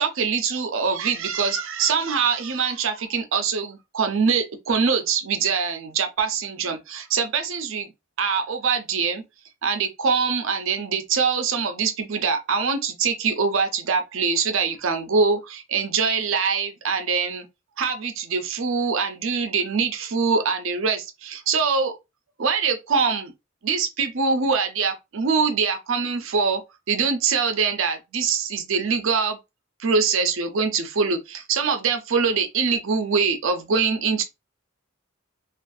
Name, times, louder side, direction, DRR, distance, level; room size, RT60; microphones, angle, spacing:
voice 1, 0.0-7.9 8.2-9.2 9.6-17.4 17.8-21.9 22.4-23.3 23.6-26.6 26.9-29.4 29.8-34.2, right 5 dB, 65° right, 0.6 m, -23 dB
2.6 x 2.4 x 2.3 m
head